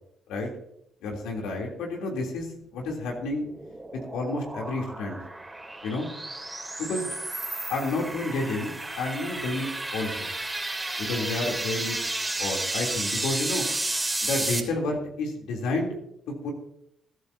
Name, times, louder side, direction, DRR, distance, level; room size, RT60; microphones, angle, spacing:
voice 1, 1.0-2.5 2.7-3.4 3.9-5.2 5.8-6.1 6.8-7.1 7.7-10.3 11.0-12.0 12.4-13.6 14.2-15.9 16.3-16.5, left 2 dB, 80° left, 0 dB, 3.2 m, -30 dB
sound 1, 3.2-14.6, right 2 dB, 15° right, 3.1 m, -32 dB
21.5 x 12.0 x 2.8 m, 0.73 s
supercardioid pair, 70°, 0 cm